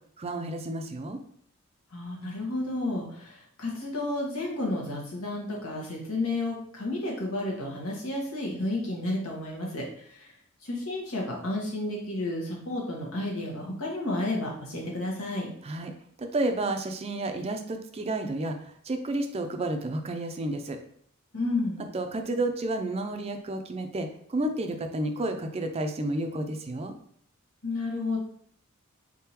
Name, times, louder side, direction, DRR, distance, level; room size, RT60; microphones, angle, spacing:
voice 1, 0.2-1.2 15.6-15.9 16.2-20.8 21.9-27.0, right 2 dB, 30° right, 6 dB, 0.4 m, -31 dB
voice 2, 1.9-10.3 10.6-15.5 21.3-21.8 27.6-28.2, left 2 dB, 90° left, -2 dB, 1.3 m, -31 dB
4.1 x 3.6 x 2.9 m, 0.63 s
head